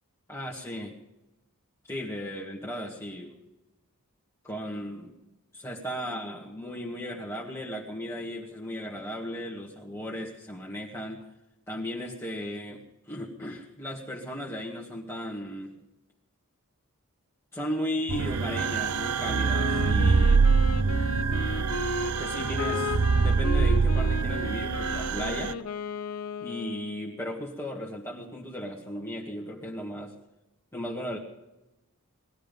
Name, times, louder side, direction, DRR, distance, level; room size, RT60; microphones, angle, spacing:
voice 1, 0.3-0.9 1.8-3.4 4.4-5.2 5.5-11.2 11.7-15.7 17.5-20.4 22.2-25.6 26.4-30.1 30.7-31.2, equal, 10° left, -3 dB, 1.9 m, -36 dB
sound 1, 18.1-25.5, right 4 dB, 80° right, 0.6 m, -24 dB
Wind instrument woodwind instrument, 19.5-27.3, left 4 dB, 75° left, 0.9 m, -35 dB
20.5 x 13.0 x 5.4 m, 0.95 s
head